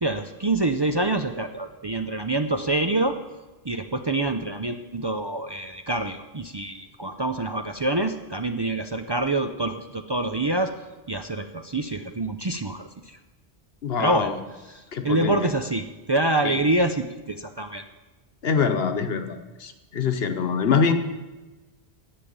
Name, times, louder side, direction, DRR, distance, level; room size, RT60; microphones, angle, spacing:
voice 1, 0.0-3.2 3.6-10.7 11.1-13.2 14.0-14.3 14.7-17.8, right 2 dB, 30° right, 6 dB, 0.5 m, -26 dB
voice 2, 13.8-14.4 14.9-15.5 16.4-16.6 18.4-20.9, left 6 dB, 75° left, 8 dB, 1.2 m, -24 dB
10.5 x 7.5 x 8.7 m, 1.2 s
omnidirectional pair, 1.0 m